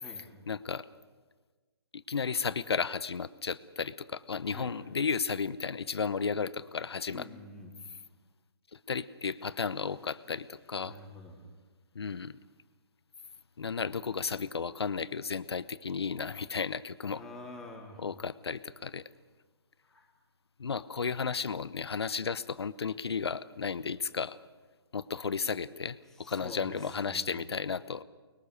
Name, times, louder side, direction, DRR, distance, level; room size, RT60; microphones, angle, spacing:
voice 1, 0.5-0.9 1.9-7.3 8.7-11.0 11.9-12.4 13.6-17.2 18.0-19.0 20.6-24.4 24.9-28.0, left 5 dB, 80° left, 16 dB, 0.9 m, -34 dB
voice 2, 7.1-7.7 10.9-11.4 17.1-18.0 19.9-20.1 26.2-27.3, left 1 dB, 5° left, -2 dB, 3.3 m, -47 dB
24.5 x 21.5 x 6.7 m, 1.4 s
hypercardioid pair, 140°, 13 cm